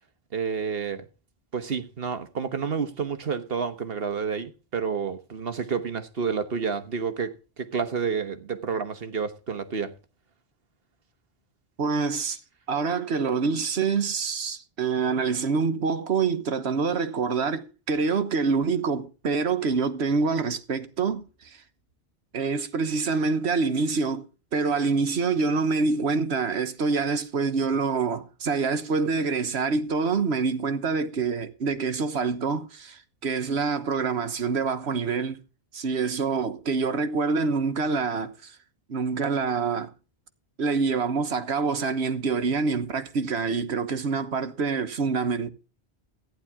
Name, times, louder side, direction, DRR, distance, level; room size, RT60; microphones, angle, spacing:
voice 1, 0.3-1.0 1.5-9.9, right 6 dB, 65° right, 1.5 m, -29 dB
voice 2, 11.8-12.4 12.7-21.6 22.3-24.2 24.5-35.4 35.7-38.6 38.9-39.9 40.6-45.5, right 4 dB, 85° right, 1.4 m, -26 dB
15.0 x 10.5 x 3.6 m
omnidirectional pair, 1.1 m